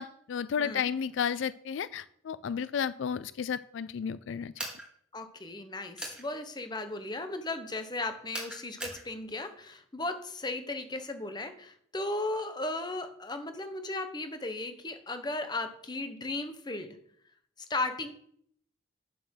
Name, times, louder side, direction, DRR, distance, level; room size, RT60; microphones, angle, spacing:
voice 1, 0.0-4.5, left 7 dB, 70° left, 17 dB, 0.3 m, -32 dB
voice 2, 0.6-0.9 5.1-17.0 17.7-18.1, left 2 dB, 20° left, 8 dB, 1.0 m, -36 dB
sound 1, 4.6-4.9 6.0-6.2 8.3-9.0, right 1 dB, 5° right, 2.5 m, -38 dB
8.7 x 7.5 x 6.4 m, 0.65 s
head